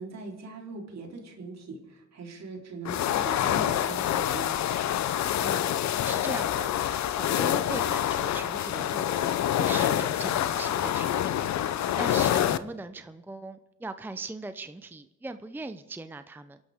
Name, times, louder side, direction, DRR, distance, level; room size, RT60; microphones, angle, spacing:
voice 1, 0.0-4.6, right 3 dB, 60° right, 0 dB, 3.7 m, -41 dB
sound 1, 2.8-12.6, left 11 dB, 65° left, 0.7 m, -27 dB
voice 2, 5.4-5.7 6.0-6.7 7.1-9.3 9.6-11.4 12.0-16.6, right 3 dB, 5° right, 11 dB, 0.6 m, -39 dB
28.0 x 11.5 x 3.6 m, 1.0 s
cardioid pair, 90°, 30 cm